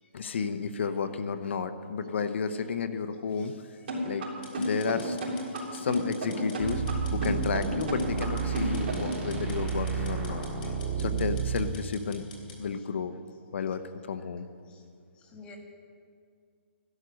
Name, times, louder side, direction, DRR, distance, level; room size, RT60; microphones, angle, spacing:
voice 1, 0.1-3.8 4.0-4.3 4.6-5.2 5.7-6.9 7.1-10.5 11.0-12.3 12.6-13.2 13.5-14.5, left 5 dB, 65° left, 11 dB, 1.0 m, -32 dB
sound 1, 3.9-9.2, right 1 dB, 50° right, 3.6 m, -32 dB
sound 2, 4.4-12.6, left 4 dB, 45° left, 3.4 m, -50 dB
sound 3, 6.6-11.7, right 6 dB, 20° right, 2.4 m, -31 dB
voice 2, 15.2-15.6, left 3 dB, 15° left, 2 dB, 1.8 m, -51 dB
15.0 x 11.5 x 6.4 m, 2.2 s
hypercardioid pair, 150°, 7 cm